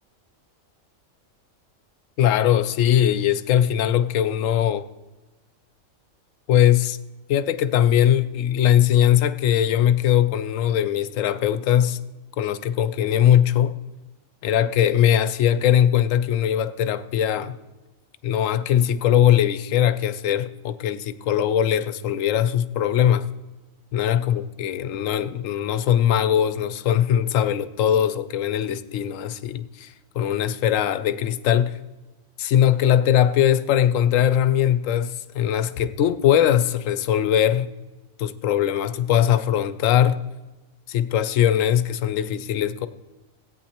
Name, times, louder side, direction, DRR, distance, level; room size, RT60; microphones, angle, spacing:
voice 1, 2.2-4.9 6.5-7.0 7.3-12.0 12.4-13.8 14.4-17.6 18.2-23.3 23.9-31.8 32.4-37.7 38.2-40.2 40.9-42.9, left 10 dB, 75° left, 0.9 m, -20 dB
16.5 x 8.8 x 2.9 m
omnidirectional pair, 1.4 m